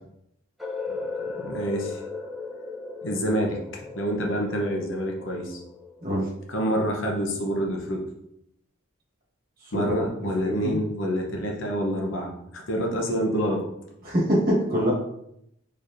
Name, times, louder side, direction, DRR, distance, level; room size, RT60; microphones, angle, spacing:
sound 1, 0.6-6.5, left 3 dB, ahead, 0.8 m, -37 dB
voice 1, 1.3-2.0 3.0-5.6 6.5-8.0 9.7-13.6, equal, 70° left, 1 dB, 0.8 m, -27 dB
voice 2, 9.6-10.8 14.0-14.9, equal, 45° right, -5 dB, 1.4 m, -25 dB
4.2 x 3.3 x 2.6 m, 0.77 s
head